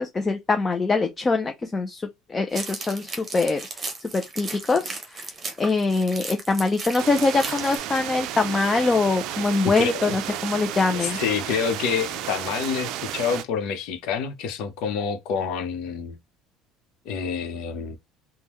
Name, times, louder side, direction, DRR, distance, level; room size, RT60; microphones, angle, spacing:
voice 1, 0.0-2.0 2.3-3.6 4.1-5.3 5.6-11.2, left 3 dB, 15° left, 0.4 m, -23 dB
sound 1, 2.5-7.8, right 3 dB, 25° right, 0.8 m, -36 dB
sound 2, 7.0-13.4, right 11 dB, 60° right, 0.4 m, -32 dB
voice 2, 9.6-10.4 11.0-16.2 17.0-18.0, left 6 dB, 65° left, 0.9 m, -28 dB
3.6 x 2.2 x 3.1 m
cardioid pair, 140°, 0 cm